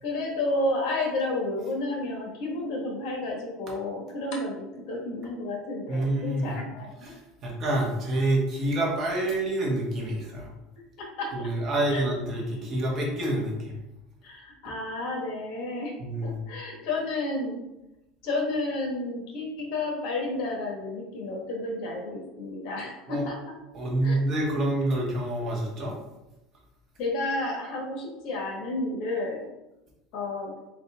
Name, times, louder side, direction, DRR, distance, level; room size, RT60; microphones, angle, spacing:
voice 1, 0.0-7.1 11.0-11.5 11.9-12.0 14.2-15.9 16.2-17.6 18.2-23.4 24.0-24.2 24.5-24.7 27.0-29.4 30.1-30.5, left 2 dB, 60° left, 0 dB, 1.2 m, -31 dB
voice 2, 5.9-6.5 7.0-10.5 11.3-13.8 16.0-16.4 23.1-23.2 23.7-26.0, right 1 dB, 35° right, -2 dB, 1.1 m, -27 dB
4.2 x 4.1 x 2.2 m, 0.96 s
cardioid pair, 155°, 0 cm